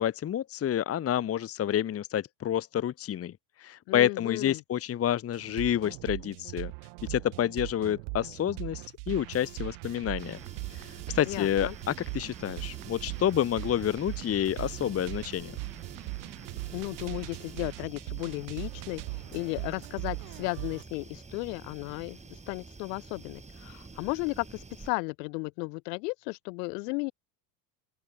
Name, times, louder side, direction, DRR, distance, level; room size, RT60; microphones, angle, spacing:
voice 1, 0.0-3.3 3.6-6.7 7.1-10.4 10.7-15.5, left 10 dB, 30° left, 1.3 m, -29 dB
voice 2, 3.9-4.6 11.3-11.8 16.7-27.1, left 27 dB, 75° left, 3.9 m, -35 dB
sound 1, 5.3-20.8, right 38 dB, 70° right, 3.5 m, -40 dB
sound 2, 10.2-24.9, right 4 dB, 15° right, 5.2 m, -48 dB
open air
supercardioid pair, 120°, 49 cm